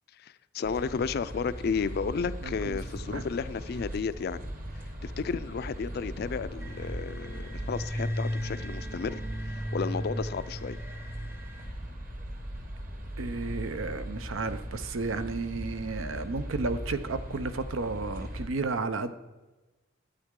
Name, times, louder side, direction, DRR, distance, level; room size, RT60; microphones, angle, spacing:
voice 1, 0.2-4.5 5.0-10.8, left 5 dB, 50° left, 14 dB, 0.3 m, -33 dB
sound 1, 0.6-18.5, equal, 45° right, 1.4 m, -39 dB
voice 2, 2.4-2.8 3.1-3.3 13.2-19.1, right 3 dB, 80° right, 11 dB, 0.6 m, -33 dB
sound 2, 6.6-11.7, equal, 10° right, 0.5 m, -36 dB
11.5 x 8.8 x 3.7 m, 1.2 s
head